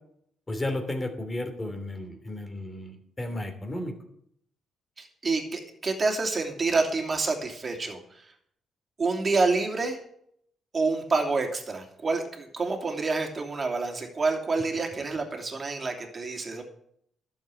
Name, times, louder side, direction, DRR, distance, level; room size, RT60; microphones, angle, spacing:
voice 1, 0.5-3.9, left 1 dB, 20° left, 6 dB, 2.9 m, -33 dB
voice 2, 5.0-8.0 9.0-10.0 10.7-16.6, right 3 dB, 35° right, 2 dB, 2.9 m, -28 dB
12.0 x 7.4 x 7.8 m, 0.70 s
cardioid pair, 90°, 0 cm